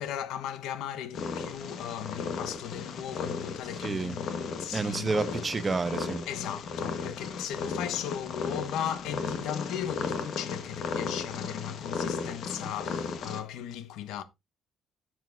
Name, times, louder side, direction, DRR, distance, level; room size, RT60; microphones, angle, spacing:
voice 1, 0.0-5.1 6.3-14.2, left 10 dB, 85° left, 0.9 m, -37 dB
Purr, 1.1-13.4, left 5 dB, 60° left, 1.3 m, -35 dB
voice 2, 3.8-4.2 4.7-6.3, right 4 dB, 25° right, 0.6 m, -30 dB
10.5 x 7.6 x 2.6 m
cardioid pair, 120°, 0 cm